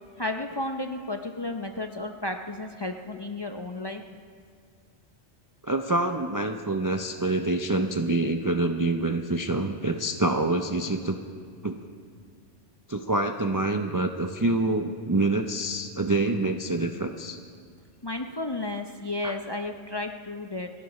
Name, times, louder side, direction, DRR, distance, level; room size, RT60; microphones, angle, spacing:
voice 1, 0.2-4.0 18.0-20.7, left 2 dB, 30° left, 4 dB, 0.5 m, -33 dB
voice 2, 5.6-11.2 11.6-11.8 12.9-17.4 19.2-19.3, right 2 dB, 30° right, 5 dB, 0.3 m, -26 dB
29.0 x 11.5 x 3.1 m, 2.1 s
omnidirectional pair, 1.2 m